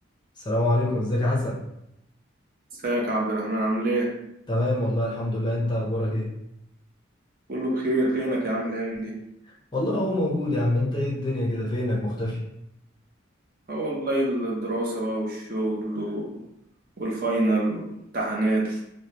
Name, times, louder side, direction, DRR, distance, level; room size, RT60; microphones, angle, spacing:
voice 1, 0.4-1.6 4.5-6.3 9.7-12.4, left 1 dB, 20° left, -3 dB, 0.5 m, -25 dB
voice 2, 2.7-4.1 7.5-9.1 13.7-16.4 17.0-17.8 18.1-18.8, right 1 dB, 45° right, -2 dB, 0.6 m, -26 dB
3.3 x 2.1 x 2.8 m, 0.81 s
head